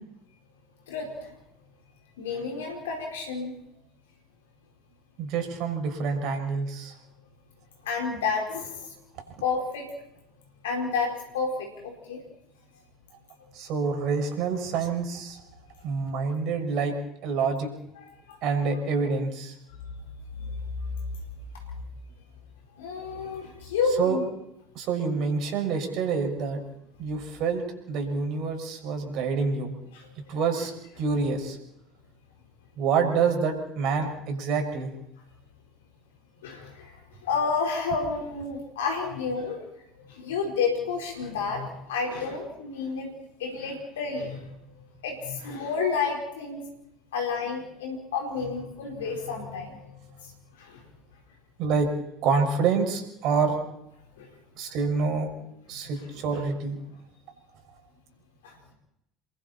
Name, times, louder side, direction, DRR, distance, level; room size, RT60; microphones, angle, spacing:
voice 1, 0.9-1.3 2.2-3.6 7.8-8.9 9.4-9.9 10.6-12.2 16.1-16.2 18.0-18.4 19.7-19.8 20.4-20.9 22.8-24.2 28.1-28.2 29.9-30.1 30.6-30.7 36.4-39.6 40.1-43.1 43.4-44.4 44.7-46.7 47.1-50.3 50.6-50.8 54.2-54.3 55.8-56.4 58.4-58.7, left 5 dB, 80° left, 1 dB, 4.7 m, -31 dB
voice 2, 5.2-6.9 13.5-15.4 15.8-17.0 17.2-17.7 18.4-19.5 24.0-24.2 24.7-26.6 27.0-29.7 30.3-30.7 31.0-31.6 32.8-34.9 51.6-51.9 52.2-53.5 54.6-55.3 55.7-56.8, right 5 dB, 60° right, 4 dB, 6.2 m, -27 dB
29.0 x 23.0 x 4.4 m, 0.80 s
hypercardioid pair, 70°, 0 cm